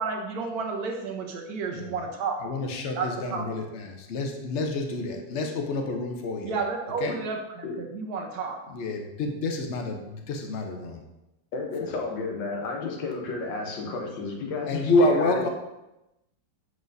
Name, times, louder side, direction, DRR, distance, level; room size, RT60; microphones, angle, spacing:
voice 1, 0.0-2.4 2.9-3.5 6.4-8.6, right 4 dB, 60° right, 3 dB, 1.2 m, -31 dB
voice 2, 2.4-6.6 7.0-7.2 8.7-11.0 14.7-15.5, left 2 dB, 60° left, 3 dB, 0.7 m, -28 dB
voice 3, 11.5-15.5, left 4 dB, 80° left, 1 dB, 1.7 m, -32 dB
7.5 x 4.7 x 2.6 m, 0.94 s
omnidirectional pair, 2.0 m